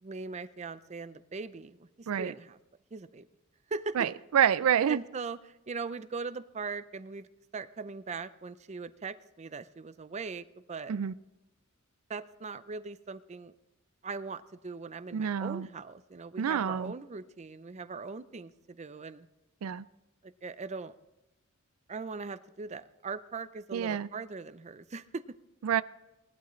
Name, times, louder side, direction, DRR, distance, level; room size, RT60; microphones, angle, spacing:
voice 1, 0.0-2.6 2.9-3.3 3.7-4.0 4.9-7.3 7.5-10.9 12.1-13.5 14.0-19.3 20.2-20.9 21.9-25.2, right 4 dB, 30° right, 13 dB, 0.5 m, -40 dB
voice 2, 4.0-5.0 10.9-11.1 15.1-15.7 16.4-16.9 19.6-19.9 23.7-24.1 25.6-25.8, right 8 dB, 85° right, 17 dB, 0.4 m, -27 dB
18.5 x 12.0 x 3.2 m, 1.0 s
head